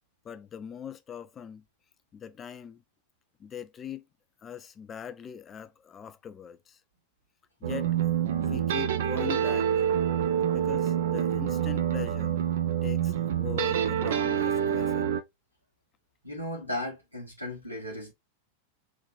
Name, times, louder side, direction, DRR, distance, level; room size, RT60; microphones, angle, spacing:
voice 1, 0.2-1.7 2.1-2.8 3.4-4.0 4.4-6.8 7.6-8.0 8.3-9.7 10.5-12.4 12.8-15.1, left 8 dB, 25° left, 0.6 m, -41 dB
sound 1, 7.6-15.2, right 9 dB, 60° right, 0.5 m, -27 dB
voice 2, 16.2-18.1, left 1 dB, 90° right, 2.1 m, -36 dB
3.9 x 2.9 x 3.5 m
figure-of-eight pair, 90°, 0 cm